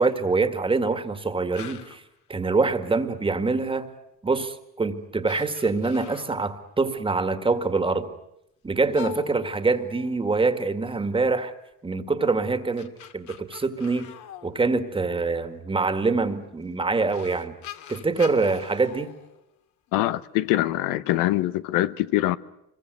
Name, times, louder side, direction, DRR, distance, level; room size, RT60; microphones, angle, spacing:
voice 1, 0.0-2.0 2.3-3.9 4.2-8.1 8.6-11.5 11.8-14.1 14.4-17.6 17.9-19.1, right 3 dB, 15° right, 2.0 m, -25 dB
sound 1, 1.5-2.1 4.2-4.3 4.9-5.0 5.2-6.6 8.9-10.5 12.5-15.2 16.6-16.7 17.1-19.9, left 11 dB, 65° left, 2.5 m, -43 dB
voice 2, 19.9-22.4, left 15 dB, 90° left, 1.0 m, -23 dB
26.0 x 23.0 x 9.4 m
cardioid pair, 135°, 32 cm